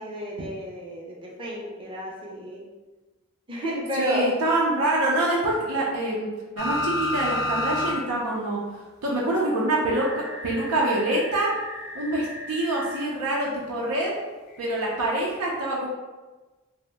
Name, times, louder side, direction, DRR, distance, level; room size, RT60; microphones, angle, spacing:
voice 1, 0.0-2.7 3.5-4.3, right 1 dB, 25° right, -3 dB, 0.5 m, -31 dB
voice 2, 3.9-8.6 9.0-11.5 11.9-14.1 14.6-15.9, right 1 dB, 90° right, -4 dB, 0.5 m, -25 dB
sound 1, 6.6-8.0 8.3-8.4 9.9-13.1 14.8-14.9, left 1 dB, 45° left, 0.5 m, -31 dB
2.7 x 2.1 x 3.3 m, 1.2 s
head